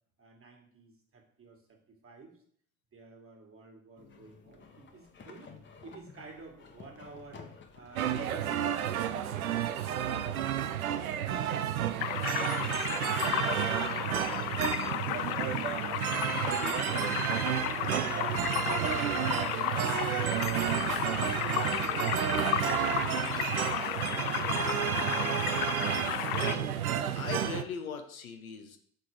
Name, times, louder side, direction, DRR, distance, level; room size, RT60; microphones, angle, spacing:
voice 1, 0.2-2.3 2.9-5.5 5.8-7.5 7.8-10.4 10.8-12.8 13.1-19.6 19.9-22.5, right 4 dB, 30° right, 2 dB, 1.9 m, -50 dB
sound 1, 4.0-8.6, left 5 dB, 25° left, 1.1 m, -52 dB
sound 2, 8.0-27.6, right 10 dB, 85° right, 0.6 m, -31 dB
sound 3, 12.0-26.6, left 14 dB, 50° left, 0.5 m, -34 dB
voice 2, 24.4-25.5 26.3-26.8 27.2-28.8, left 6 dB, 85° left, 6 dB, 0.9 m, -40 dB
6.7 x 4.0 x 4.8 m, 0.62 s
figure-of-eight pair, 65°, 42 cm